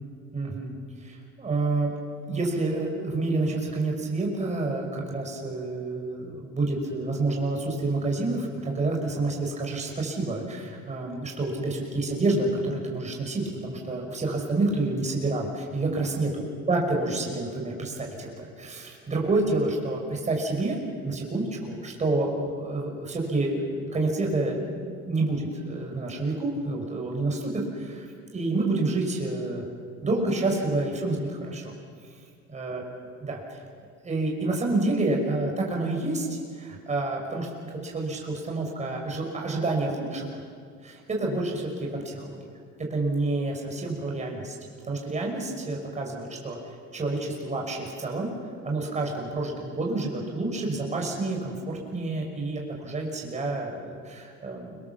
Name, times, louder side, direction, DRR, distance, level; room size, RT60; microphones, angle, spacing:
voice 1, 0.3-1.9 2.3-20.8 21.0-29.7 30.0-31.7 32.5-32.8 33.2-33.6 34.0-37.5 37.8-40.4 40.8-42.4 42.9-44.6 44.8-46.6 46.9-48.3 48.6-54.8, right 2 dB, 20° right, 0 dB, 5.9 m, -28 dB
29.5 x 26.0 x 7.5 m, 2.1 s
cardioid pair, 140°, 32 cm